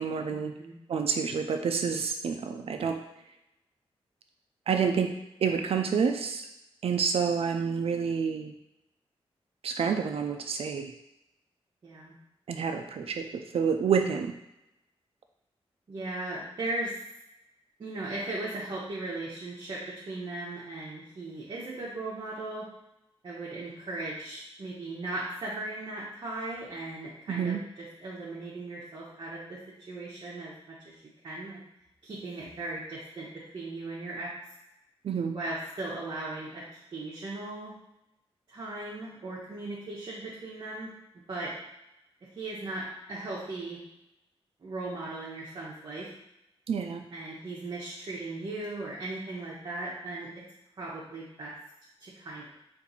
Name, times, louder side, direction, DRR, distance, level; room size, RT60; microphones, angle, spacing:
voice 1, 0.0-0.5 0.9-3.0 4.7-5.1 5.4-6.4 6.8-8.5 9.6-10.9 12.5-14.3 27.3-27.6 35.0-35.4 46.7-47.0, right 6 dB, 65° right, 6 dB, 0.5 m, -28 dB
voice 2, 11.8-12.1 15.9-16.9 17.8-22.7 23.2-29.6 29.9-30.9 31.2-31.6 32.0-33.3 33.5-34.3 35.3-36.6 36.9-37.7 38.5-40.9 41.3-41.5 42.3-43.8 44.6-46.1 47.1-50.4 50.8-51.5 52.0-52.5, right 2 dB, 45° right, -7 dB, 1.0 m, -37 dB
4.4 x 2.6 x 4.0 m, 0.87 s
wide cardioid pair, 155°, 11 cm